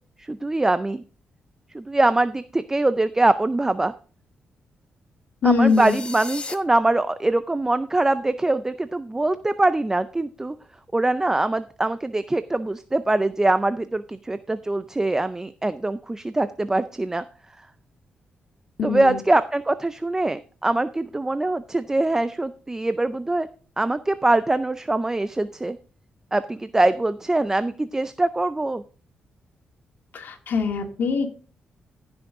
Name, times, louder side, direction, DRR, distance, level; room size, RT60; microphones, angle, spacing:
voice 1, 0.2-1.0 1.7-3.9 5.4-10.6 10.9-17.2 18.8-23.5 23.8-25.8 26.3-28.8, right 2 dB, 15° right, 12 dB, 0.5 m, -23 dB
voice 2, 5.4-6.0 18.8-19.2 30.1-31.3, left 5 dB, 65° left, 4 dB, 1.9 m, -22 dB
sound 1, 5.7-6.5, left 3 dB, 30° left, 1.1 m, -35 dB
15.0 x 6.2 x 3.7 m, 0.39 s
cardioid pair, 100°, 4 cm